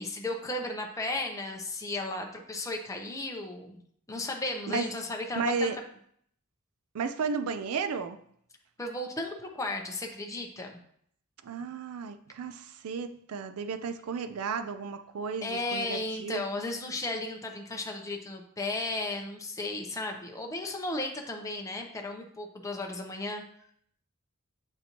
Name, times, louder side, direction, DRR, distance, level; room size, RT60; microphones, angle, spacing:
voice 1, 0.0-3.8 4.1-5.7 8.8-10.8 15.4-23.4, left 2 dB, 15° left, 0.7 m, -35 dB
voice 2, 5.3-5.8 6.9-8.2 11.4-16.4, right 4 dB, 75° right, 0.4 m, -33 dB
8.0 x 4.2 x 2.9 m
head